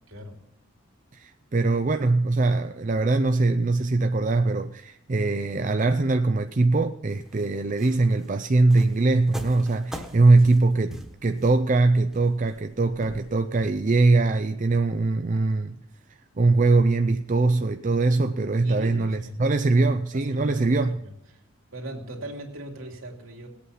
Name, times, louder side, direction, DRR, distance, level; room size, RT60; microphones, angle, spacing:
voice 1, 1.1-15.7 16.4-20.9, right 3 dB, 35° right, 0.5 m, -22 dB
sound 1, 7.1-14.1, equal, ahead, 1.3 m, -43 dB
voice 2, 18.6-19.4 19.8-21.4 21.7-23.5, right 1 dB, 75° right, 2.7 m, -40 dB
19.5 x 8.5 x 5.6 m
head